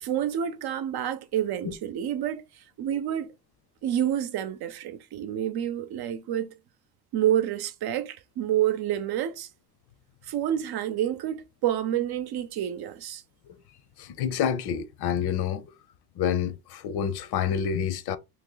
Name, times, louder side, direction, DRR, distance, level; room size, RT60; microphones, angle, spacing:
voice 1, 0.0-2.4 2.8-3.3 3.8-6.5 7.1-9.5 10.3-13.2, right 11 dB, 70° right, 0.6 m, -28 dB
voice 2, 14.0-15.6 16.2-18.2, left 8 dB, 75° left, 0.7 m, -28 dB
3.0 x 3.0 x 3.9 m
cardioid pair, 130°, 39 cm